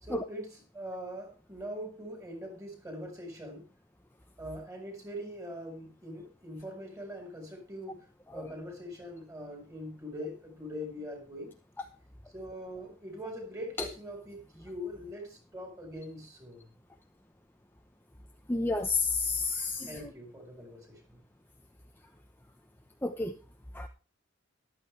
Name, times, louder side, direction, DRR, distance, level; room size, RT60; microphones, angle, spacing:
voice 1, 0.0-3.7 4.4-8.0 8.3-11.6 12.3-16.7 19.8-21.2, equal, 15° right, 4.7 m, -42 dB
voice 2, 18.5-20.0 23.0-23.3 23.7-23.9, left 3 dB, 10° left, 0.8 m, -30 dB
14.0 x 12.0 x 3.3 m
head